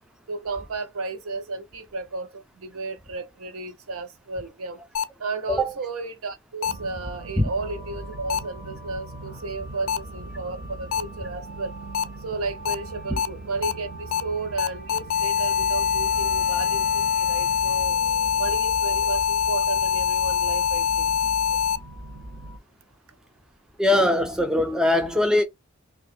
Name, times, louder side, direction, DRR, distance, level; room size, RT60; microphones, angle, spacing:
voice 1, 0.3-4.8 5.2-11.7 12.2-18.0 18.4-21.1, right 3 dB, 80° right, 0.7 m, -33 dB
sound 1, 4.9-5.0 6.6-6.7 8.3-8.4 9.9-10.0 10.9-11.0 11.9-12.0 12.6-12.7 13.2-13.3 13.6-13.7 14.1-14.2 14.6-21.8, left 8 dB, 80° left, 0.4 m, -24 dB
sound 2, 6.6-22.6, right 1 dB, 45° right, 0.7 m, -39 dB
voice 2, 23.8-25.4, left 1 dB, 5° right, 0.3 m, -21 dB
2.8 x 2.3 x 4.1 m
head